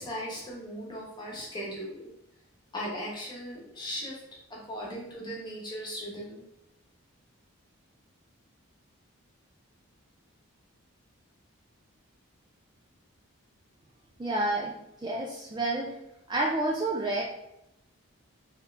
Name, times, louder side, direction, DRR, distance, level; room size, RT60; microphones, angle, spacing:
voice 1, 0.0-2.1 2.7-4.2 4.5-6.4, equal, 20° left, -4 dB, 1.0 m, -38 dB
voice 2, 14.2-16.0 16.3-17.2, right 2 dB, 20° right, -1 dB, 0.3 m, -29 dB
3.6 x 3.0 x 3.3 m, 0.85 s
head